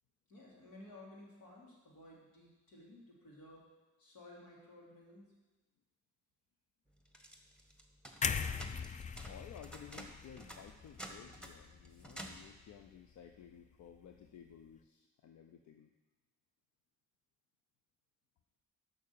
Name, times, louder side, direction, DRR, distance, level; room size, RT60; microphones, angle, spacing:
voice 1, 0.3-3.7 4.0-5.3, left 1 dB, 75° left, -4 dB, 2.9 m, -56 dB
sound 1, 7.1-12.6, right 1 dB, 5° left, 1.3 m, -51 dB
sound 2, 8.2-12.2 12.6-12.8, left 6 dB, 25° left, 0.4 m, -40 dB
voice 2, 9.1-15.9, left 8 dB, 60° left, 5 dB, 0.7 m, -55 dB
6.4 x 5.9 x 6.9 m, 1.2 s
supercardioid pair, 60°, 33 cm